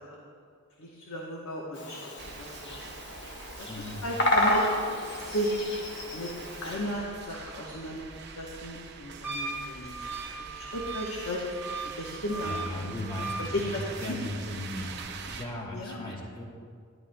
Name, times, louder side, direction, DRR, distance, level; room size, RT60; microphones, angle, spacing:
voice 1, 0.8-2.1 2.4-2.8 3.6-3.7 4.0-4.6 5.2-5.5 6.1-6.3 6.6-8.0 8.4-11.4 12.0-12.9 13.4-14.2 15.7-16.1, equal, 75° left, -3 dB, 1.0 m, -35 dB
Bird vocalization bird call bird song, 1.7-6.8, left 1 dB, 55° left, 1.0 m, -31 dB
sound 1, 2.2-15.4, right 5 dB, 50° right, 0.6 m, -44 dB
voice 2, 3.7-4.0 12.4-16.4, left 1 dB, 20° left, -2 dB, 1.2 m, -37 dB
Wind instrument woodwind instrument, 9.2-13.5, right 4 dB, 10° right, 0.7 m, -38 dB
11.0 x 11.0 x 2.2 m, 2.1 s
head